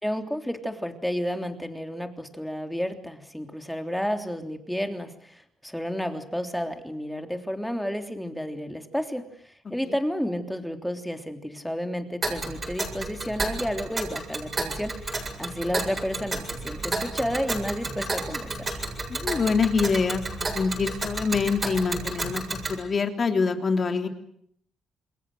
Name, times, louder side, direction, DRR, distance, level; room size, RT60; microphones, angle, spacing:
voice 1, 0.0-18.8, equal, ahead, 6 dB, 3.4 m, -31 dB
Tick, 12.2-22.8, right 2 dB, 30° right, 7.9 m, -32 dB
voice 2, 19.1-20.2 20.5-22.4 22.7-24.1, left 5 dB, 40° left, 6 dB, 3.4 m, -25 dB
28.0 x 21.5 x 8.0 m, 0.69 s
cardioid pair, 90°, 0 cm